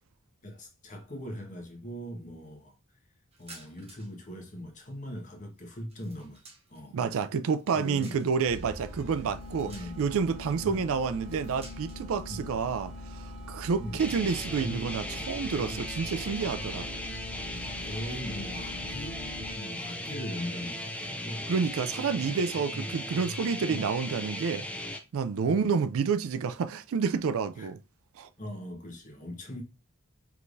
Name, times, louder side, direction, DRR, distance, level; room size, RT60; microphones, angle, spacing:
voice 1, 0.4-2.7 3.4-6.4 6.7-7.0 7.7-8.3 9.0-9.3 9.6-10.0 10.6-10.8 12.3-12.5 13.8-14.0 17.8-19.2 19.5-21.5 22.7-22.9 23.7-23.9 25.4-25.8 27.6-27.7 28.4-29.6, equal, 35° left, 1.2 m, -40 dB
sound 1, 3.3-4.2 4.5-6.9 7.4-8.5 9.3-10.3 11.1-12.1, right 3 dB, 30° right, 1.1 m, -53 dB
voice 2, 6.9-16.9 21.5-24.7 25.1-27.8 28.2-28.3, right 5 dB, 70° right, 0.4 m, -29 dB
sound 2, 8.4-19.9, left 1 dB, 85° right, 2.5 m, -43 dB
sound 3, 14.0-25.0, left 1 dB, 5° left, 0.5 m, -37 dB
4.8 x 3.4 x 2.6 m
head